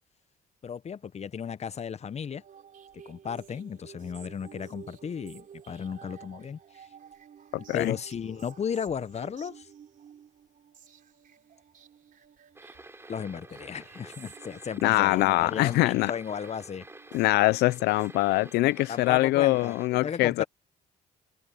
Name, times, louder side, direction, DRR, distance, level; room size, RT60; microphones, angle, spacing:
voice 1, 0.6-2.4 3.1-6.6 7.7-9.7 13.1-16.9 18.9-20.4, left 7 dB, 40° left, 1.0 m, -35 dB
sound 1, 2.2-18.7, right 8 dB, 55° right, 4.1 m, -52 dB
sound 2, 12.6-19.9, right 2 dB, 15° right, 3.3 m, -49 dB
voice 2, 14.8-16.1 17.1-20.4, left 19 dB, 80° left, 0.6 m, -23 dB
supercardioid pair, 65°, 17 cm